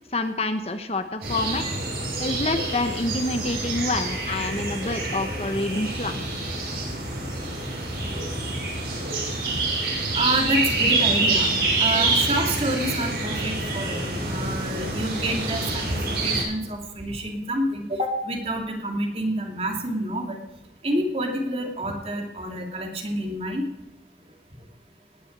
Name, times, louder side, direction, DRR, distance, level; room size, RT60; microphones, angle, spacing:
voice 1, 0.1-1.6 2.2-6.2, left 2 dB, 35° left, 8 dB, 1.0 m, -27 dB
sound 1, 1.2-16.4, right 2 dB, 60° right, 6.8 m, -27 dB
voice 2, 10.1-11.5 11.8-16.0 16.2-20.4 20.8-23.6, right 1 dB, 35° right, 2 dB, 2.8 m, -28 dB
19.0 x 7.1 x 8.9 m, 0.95 s
head